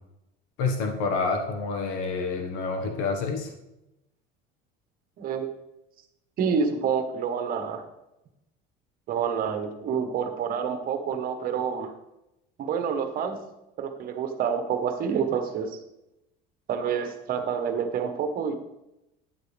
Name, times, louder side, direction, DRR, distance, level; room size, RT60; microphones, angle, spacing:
voice 1, 0.6-3.5, left 4 dB, 75° left, 3 dB, 1.4 m, -28 dB
voice 2, 6.4-7.9 9.1-11.9 12.6-13.4 13.8-15.8 16.7-18.6, right 7 dB, 45° right, 7 dB, 1.1 m, -28 dB
10.5 x 8.3 x 3.3 m, 0.90 s
cardioid pair, 155°, 21 cm